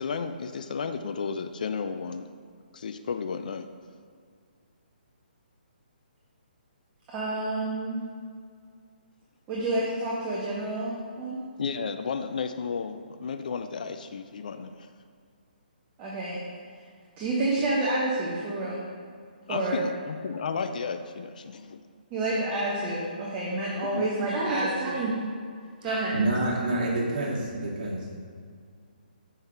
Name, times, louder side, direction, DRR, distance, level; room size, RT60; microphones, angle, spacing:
voice 1, 0.0-2.3 2.7-3.6 11.6-14.9 19.5-21.8 23.8-24.1, left 5 dB, 55° left, 8 dB, 0.4 m, -33 dB
voice 2, 7.1-8.0 9.5-11.4 16.0-16.4 17.2-18.8 19.5-19.8 22.1-25.2 25.8-26.2, right 2 dB, 25° right, -5 dB, 1.1 m, -29 dB
voice 3, 25.8-28.2, right 2 dB, 50° right, -4 dB, 2.0 m, -28 dB
7.2 x 5.4 x 4.6 m, 2.1 s
figure-of-eight pair, 135°, 5 cm